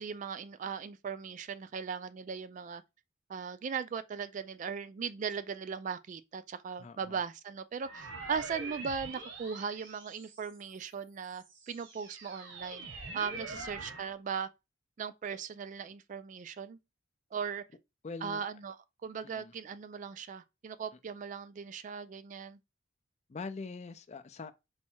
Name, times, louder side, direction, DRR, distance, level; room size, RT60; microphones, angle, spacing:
voice 1, 0.0-2.8 3.3-12.9 13.1-14.5 15.0-16.8 17.3-17.6 18.2-18.8 19.0-22.6, right 6 dB, 40° right, 0.3 m, -38 dB
voice 2, 6.8-7.2 13.3-13.6 18.0-18.4 19.2-19.5 23.3-24.5, left 4 dB, 35° left, 0.4 m, -43 dB
sound 1, 7.8-10.7 11.3-14.1, right 3 dB, 75° right, 1.1 m, -44 dB
4.2 x 2.3 x 4.4 m
head